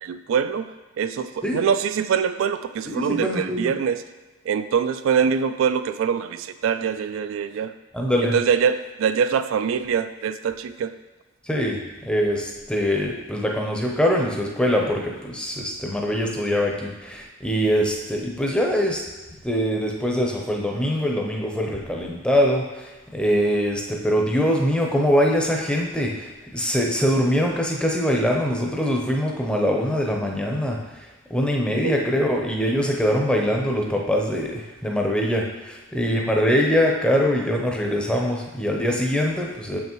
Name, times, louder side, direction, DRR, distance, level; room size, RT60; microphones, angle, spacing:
voice 1, 0.0-4.0 4.5-7.7 8.3-10.9 31.8-31.9, right 7 dB, 80° right, 12 dB, 0.3 m, -24 dB
voice 2, 2.9-3.7 7.9-8.4 11.4-19.0 19.4-39.8, equal, 5° left, 0 dB, 0.6 m, -23 dB
6.9 x 5.6 x 3.0 m, 1.2 s
head